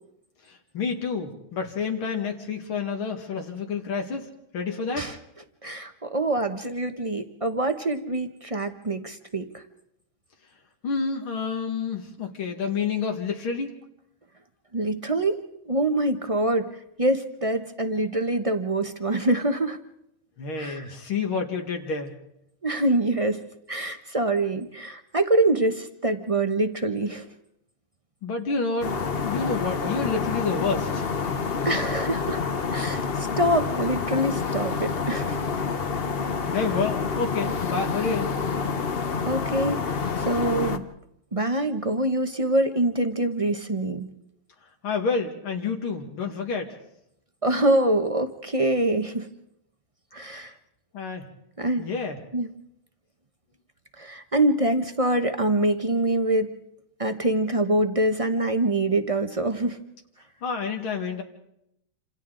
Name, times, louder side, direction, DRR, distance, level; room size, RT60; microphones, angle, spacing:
voice 1, 0.5-4.3 4.5-5.1 10.8-13.7 20.4-22.1 28.2-28.9 29.2-31.1 36.5-38.3 44.8-46.8 50.3-50.4 50.9-51.3 51.8-52.2 60.4-61.2, left 5 dB, 80° left, 2 dB, 2.7 m, -29 dB
voice 2, 5.6-9.6 14.7-16.7 17.0-19.8 20.6-20.9 22.6-27.3 31.6-32.4 32.7-35.6 39.2-40.8 41.3-44.1 47.4-49.3 50.1-50.5 51.6-51.9 52.3-52.5 54.0-56.5 57.0-59.8, right 1 dB, 40° right, 7 dB, 0.5 m, -25 dB
sound 1, 28.8-40.8, left 5 dB, 45° left, 0.8 m, -28 dB
28.0 x 26.5 x 3.9 m, 0.79 s
omnidirectional pair, 2.3 m